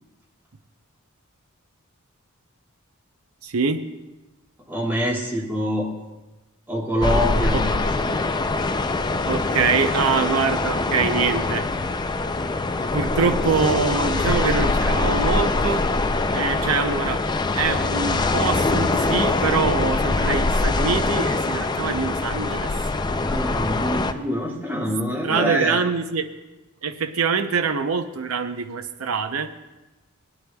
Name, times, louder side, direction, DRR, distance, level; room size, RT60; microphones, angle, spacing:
voice 1, 3.4-3.9 7.5-7.7 9.3-11.7 12.9-15.8 16.3-17.2 17.5-22.7 25.2-26.3 26.8-29.5, right 5 dB, 75° right, 8 dB, 0.7 m, -24 dB
voice 2, 4.7-5.9 6.7-7.8 23.1-25.8, equal, 10° right, -2 dB, 2.0 m, -25 dB
sound 1, 7.0-24.1, left 3 dB, 20° left, 0.4 m, -23 dB
20.0 x 9.8 x 2.3 m, 1.1 s
head